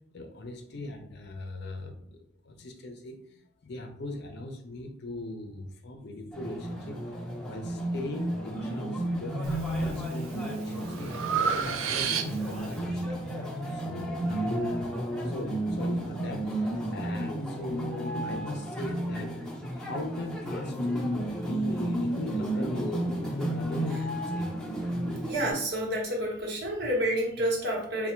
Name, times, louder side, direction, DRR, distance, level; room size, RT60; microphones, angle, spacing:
voice 1, 0.1-2.2 2.4-7.2 7.5-9.5 9.8-11.3 11.6-13.2 13.7-14.9 15.2-19.4 19.7-20.8 21.5-23.2 23.5-24.5, left 1 dB, 55° left, 5 dB, 0.5 m, -39 dB
sound 1, 6.3-25.5, right 1 dB, 5° left, 0.7 m, -32 dB
Breathing, 9.4-9.9 10.4-12.7, right 6 dB, 80° right, 0.4 m, -30 dB
voice 2, 25.3-28.1, right 1 dB, 55° right, -1 dB, 1.0 m, -29 dB
3.3 x 2.2 x 4.3 m, 0.66 s
head